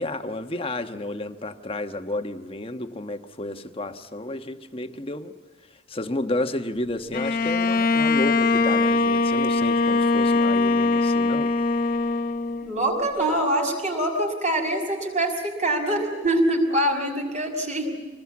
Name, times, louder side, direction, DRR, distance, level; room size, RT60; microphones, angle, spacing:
voice 1, 0.0-5.3 5.7-11.5, left 1 dB, 30° left, 1.2 m, -31 dB
Bowed string instrument, 7.1-12.9, left 3 dB, 50° left, 0.9 m, -22 dB
voice 2, 12.6-18.0, right 1 dB, 40° right, 5.9 m, -24 dB
26.0 x 20.5 x 8.5 m
head